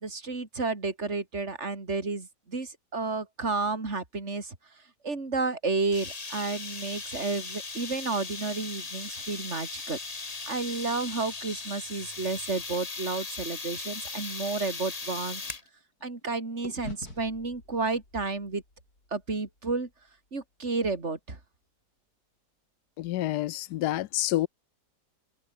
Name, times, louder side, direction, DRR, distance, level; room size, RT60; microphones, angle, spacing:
voice 1, 0.0-4.5 5.0-10.0 10.5-15.4 16.0-18.6 19.1-19.9 20.3-21.4, right 3 dB, 40° right, 3.8 m, -31 dB
sound 1, 5.9-15.7, left 4 dB, 25° left, 1.3 m, -38 dB
sound 2, 13.9-16.3 16.6-20.9, left 2 dB, 60° left, 8.0 m, -49 dB
voice 2, 23.0-24.5, left 15 dB, 75° left, 1.1 m, -28 dB
omnidirectional pair, 1.8 m